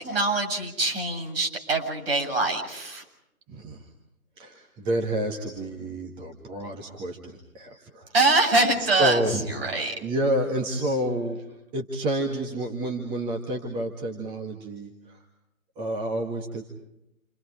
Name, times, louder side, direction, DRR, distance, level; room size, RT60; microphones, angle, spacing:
voice 1, 0.0-3.0 8.1-9.9, right 2 dB, 45° right, 3 dB, 7.6 m, -24 dB
voice 2, 3.5-3.8 4.4-8.1 8.8-9.5 10.0-11.4 11.7-15.2 15.8-16.6, right 1 dB, 10° right, 1 dB, 1.8 m, -29 dB
29.5 x 29.0 x 5.0 m, 0.83 s
figure-of-eight pair, 140°, 42 cm